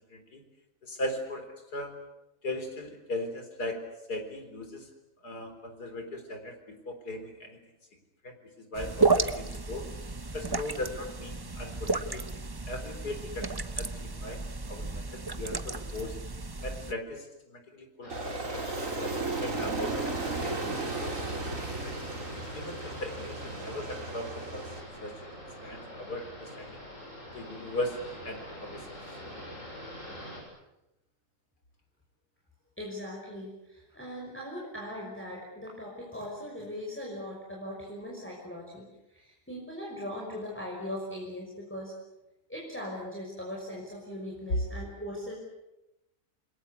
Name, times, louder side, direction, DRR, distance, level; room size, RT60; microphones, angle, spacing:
voice 1, 0.1-0.4 0.8-1.9 2.4-3.8 4.1-4.9 5.2-7.6 8.2-9.9 10.3-12.3 12.7-14.4 14.7-16.2 16.6-20.1 20.4-21.4 21.9-22.0 22.5-24.7 25.0-25.1 25.6-26.7 27.3-29.0, left 1 dB, 85° left, 6 dB, 4.6 m, -38 dB
Bubbles popping on the surface of water, 8.7-16.9, right 3 dB, 20° right, 0.8 m, -32 dB
sound 1, 18.0-30.4, equal, 55° left, 7.7 m, -44 dB
Aircraft, 18.1-24.8, right 3 dB, 55° right, 3.3 m, -35 dB
voice 2, 32.8-41.9 42.5-45.3, left 1 dB, 5° left, -3 dB, 5.7 m, -40 dB
29.0 x 22.0 x 8.3 m, 0.95 s
omnidirectional pair, 1.6 m